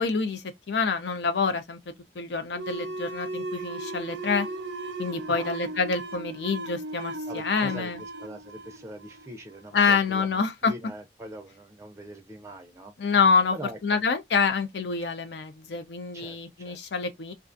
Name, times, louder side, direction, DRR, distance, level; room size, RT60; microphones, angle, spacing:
voice 1, 0.0-4.5 5.0-8.0 9.7-10.7 13.0-13.6 13.8-17.3, left 5 dB, 75° left, 0.5 m, -26 dB
sound 1, 2.5-9.7, right 2 dB, 85° right, 0.5 m, -36 dB
voice 2, 7.3-12.9 13.5-14.0 16.1-16.8, right 1 dB, 15° right, 0.4 m, -42 dB
2.4 x 2.2 x 2.5 m
head